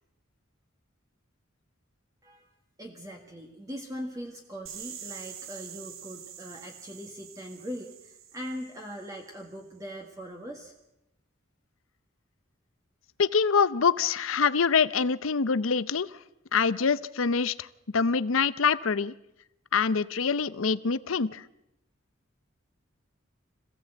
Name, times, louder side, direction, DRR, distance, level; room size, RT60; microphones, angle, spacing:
voice 1, 2.8-10.7, equal, 15° right, 2 dB, 1.6 m, -41 dB
sound 1, 4.7-9.4, right 9 dB, 80° right, 1.9 m, -45 dB
voice 2, 13.2-16.1 16.5-17.7 17.9-19.1 19.7-21.4, left 5 dB, 80° left, 16 dB, 0.7 m, -25 dB
25.5 x 16.5 x 7.8 m, 0.90 s
head